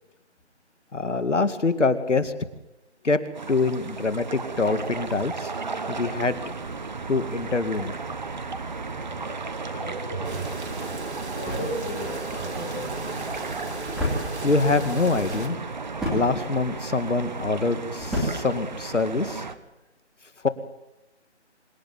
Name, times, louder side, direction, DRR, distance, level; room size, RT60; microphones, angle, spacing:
voice 1, 0.9-2.3 3.0-3.2 3.5-5.5 5.9-6.4 7.1-7.9 14.4-15.6 16.1-19.5 20.4-20.5, left 3 dB, 90° left, 11 dB, 2.3 m, -24 dB
sound 1, 3.3-19.6, right 4 dB, 40° right, 1.3 m, -34 dB
voice 2, 9.7-10.6 11.3-13.3, equal, 15° left, -7 dB, 4.6 m, -37 dB
sound 2, 10.2-15.5, right 2 dB, 70° right, 3.7 m, -35 dB
sound 3, 10.6-19.4, left 1 dB, ahead, 2.7 m, -35 dB
25.5 x 11.0 x 9.4 m, 0.97 s
figure-of-eight pair, 170°, 35 cm